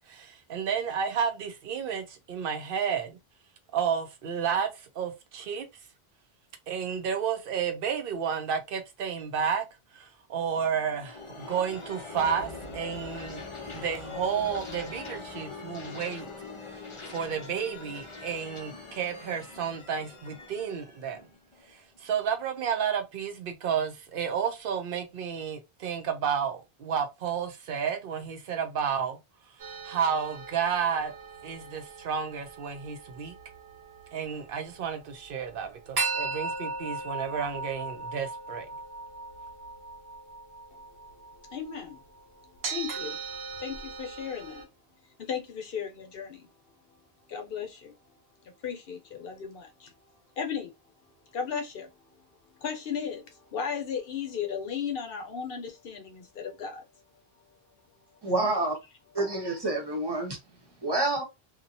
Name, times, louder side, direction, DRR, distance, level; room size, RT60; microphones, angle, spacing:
voice 1, 0.1-3.2 3.7-5.7 6.7-9.6 9.9-16.3 16.7-16.8 17.1-21.2 21.7-29.2 29.8-31.1 31.4-33.3 34.1-38.7, right 7 dB, 65° right, 0.8 m, -31 dB
sound 1, 10.5-22.1, left 3 dB, 35° left, 0.6 m, -42 dB
sound 2, 29.6-44.6, right 4 dB, 90° right, 1.2 m, -38 dB
voice 2, 41.5-42.0 42.7-43.2 43.6-44.7 45.2-46.5 47.3-47.9 48.6-49.9 50.4-50.7 51.3-51.9 52.6-56.8, left 7 dB, 65° left, 0.9 m, -35 dB
voice 3, 58.2-58.8 59.1-60.4 60.8-61.2, right 2 dB, 25° right, 1.0 m, -28 dB
2.8 x 2.3 x 2.6 m
omnidirectional pair, 1.0 m